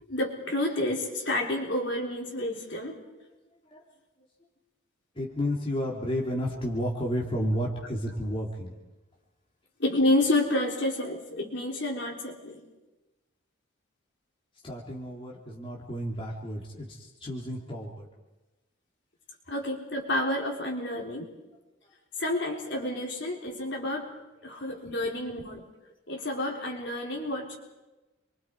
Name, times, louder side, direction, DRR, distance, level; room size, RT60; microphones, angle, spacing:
voice 1, 0.1-3.0 9.8-12.6 19.5-21.3 22.2-24.1 24.4-25.6 26.1-27.6, left 1 dB, 55° left, 0 dB, 3.9 m, -29 dB
voice 2, 5.1-8.7 14.6-18.1 24.8-24.9, equal, 25° left, -3 dB, 2.9 m, -32 dB
29.5 x 24.0 x 4.7 m, 1.1 s
head